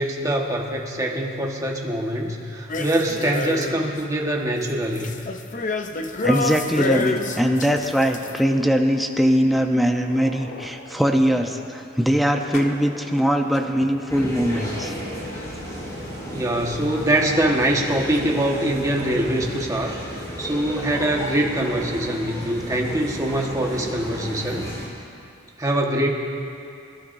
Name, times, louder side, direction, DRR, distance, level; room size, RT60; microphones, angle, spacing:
voice 1, 0.0-5.1 16.3-24.7 25.6-26.1, right 1 dB, 15° right, -1 dB, 1.4 m, -24 dB
sound 1, 2.7-4.0 4.4-8.4, left 3 dB, 40° left, 0.7 m, -28 dB
voice 2, 6.2-14.9, equal, ahead, 3 dB, 0.7 m, -21 dB
sound 2, 7.0-17.8 18.1-18.2 19.0-19.1 19.6-19.7 21.0-21.3, left 2 dB, 65° left, 1.5 m, -42 dB
sound 3, 14.1-24.9, equal, 15° left, 4.1 m, -33 dB
26.5 x 13.0 x 2.7 m, 2.5 s
head